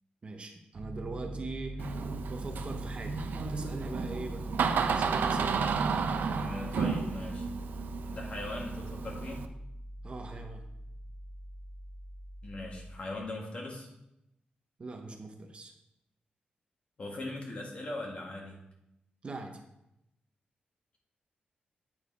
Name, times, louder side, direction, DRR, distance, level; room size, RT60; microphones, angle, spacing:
voice 1, 0.2-1.8 2.3-4.5 4.9-5.6 10.0-10.6 14.8-15.7 19.2-19.6, right 3 dB, 35° right, 4 dB, 0.9 m, -42 dB
Piano, 0.7-12.9, right 1 dB, 55° right, 1.3 m, -42 dB
Door, 1.8-9.5, right 5 dB, 80° right, 0.6 m, -32 dB
voice 2, 6.3-7.5 8.1-9.5 12.4-13.9 17.0-18.6, left 2 dB, 45° left, -1 dB, 1.8 m, -40 dB
8.6 x 4.7 x 4.6 m, 0.85 s
wide cardioid pair, 125°, 3 cm